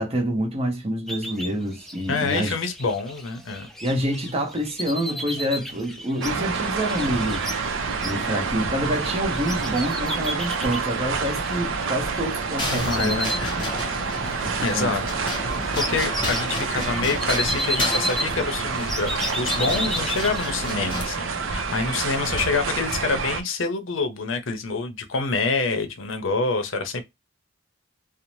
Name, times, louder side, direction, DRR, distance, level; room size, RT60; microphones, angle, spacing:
voice 1, 0.0-2.5 3.8-7.5 8.0-13.2 14.4-14.9, equal, 30° right, 0.8 m, -27 dB
sound 1, 1.1-12.4 12.7-14.1 14.4-20.7, equal, ahead, 0.4 m, -33 dB
voice 2, 2.1-3.7 12.7-13.6 14.6-15.0 15.7-27.0, left 4 dB, 70° left, 0.6 m, -26 dB
sound 2, 6.2-23.4, right 4 dB, 75° right, 0.5 m, -28 dB
sound 3, 12.6-21.0, left 1 dB, 25° left, 0.9 m, -32 dB
2.6 x 2.0 x 3.0 m
head